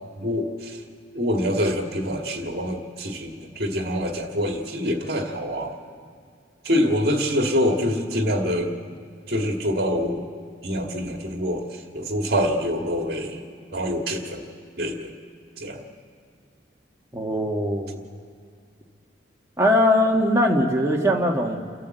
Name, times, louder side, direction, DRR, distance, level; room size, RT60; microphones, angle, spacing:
voice 1, 0.2-0.8 1.1-5.8 6.6-8.7 9.3-10.2 10.6-13.4 13.7-14.4 14.8-15.1 15.6-15.8, equal, 55° right, 2 dB, 2.2 m, -25 dB
voice 2, 17.1-18.0 19.6-21.6, left 1 dB, 15° right, 0 dB, 1.7 m, -21 dB
29.0 x 12.0 x 8.1 m, 2.3 s
head